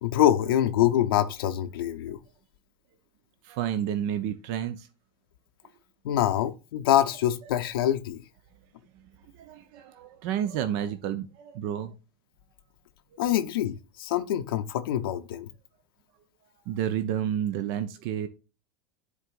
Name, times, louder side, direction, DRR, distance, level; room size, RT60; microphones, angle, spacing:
voice 1, 0.0-2.2 6.0-8.2 13.2-15.5, left 12 dB, 70° left, 0.6 m, -25 dB
voice 2, 3.4-4.9 9.4-11.9 16.7-18.3, right 10 dB, 55° right, 0.7 m, -30 dB
10.5 x 3.9 x 2.4 m
hypercardioid pair, 85°, 13 cm